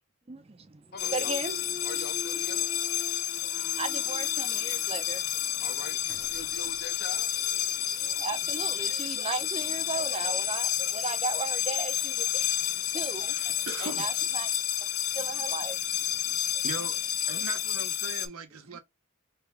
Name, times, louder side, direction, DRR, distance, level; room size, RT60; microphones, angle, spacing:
voice 1, 0.3-0.8 1.1-1.5 3.4-5.5 8.0-14.5 15.2-16.5 18.7-18.8, right 4 dB, 30° right, 0.5 m, -37 dB
voice 2, 0.9-2.7 5.6-7.3 17.2-17.5, left 3 dB, 45° left, 0.9 m, -43 dB
Thump thud, 0.9-4.9 5.4-10.1, left 3 dB, 20° left, 0.8 m, -47 dB
sound 1, 1.0-18.3, left 11 dB, 80° left, 0.6 m, -30 dB
voice 3, 13.3-14.1 16.6-17.0 17.3-18.8, right 4 dB, 85° right, 0.9 m, -39 dB
3.4 x 3.3 x 3.4 m
head